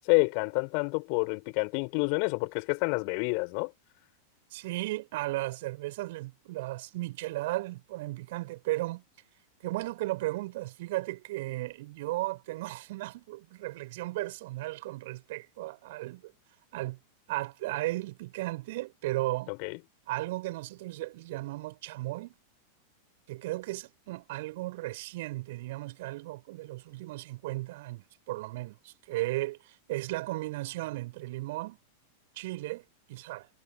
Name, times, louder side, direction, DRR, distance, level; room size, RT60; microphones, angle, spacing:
voice 1, 0.1-3.7 19.5-19.8, left 40 dB or more, 45° left, 5.3 m, -28 dB
voice 2, 4.5-9.0 9.6-16.3 16.7-17.0 17.3-19.5 20.1-22.3 23.3-31.8 32.4-33.5, right 19 dB, 50° right, 6.3 m, -35 dB
figure-of-eight pair, 90°, 0 cm